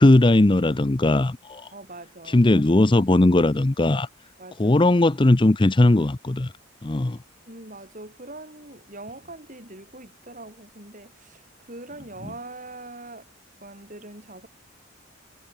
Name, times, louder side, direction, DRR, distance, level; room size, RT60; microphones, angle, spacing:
voice 1, 0.0-1.7 2.3-4.1 4.6-6.5 6.8-7.2, left 2 dB, 25° left, 0.6 m, -18 dB
voice 2, 1.7-2.5 4.4-4.8 7.5-13.3 13.6-14.5, right 2 dB, 40° right, 7.6 m, -42 dB
head